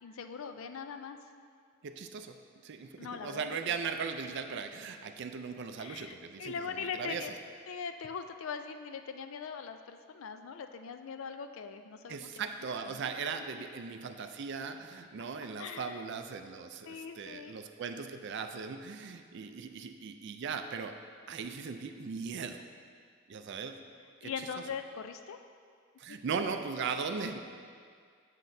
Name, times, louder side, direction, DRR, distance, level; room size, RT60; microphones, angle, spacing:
voice 1, 0.0-1.2 3.0-3.5 5.8-7.3 7.7-12.4 12.8-13.1 13.4-13.5 15.6-16.0 16.9-17.5 24.2-25.4 26.1-26.2, left 6 dB, 65° left, 8 dB, 0.4 m, -41 dB
voice 2, 1.8-2.4 2.6-7.3 12.1-20.9 21.3-22.6 23.3-23.8 24.2-24.3 26.0-27.4, right 5 dB, 55° right, 7 dB, 0.4 m, -38 dB
7.6 x 7.3 x 2.7 m, 2.1 s
head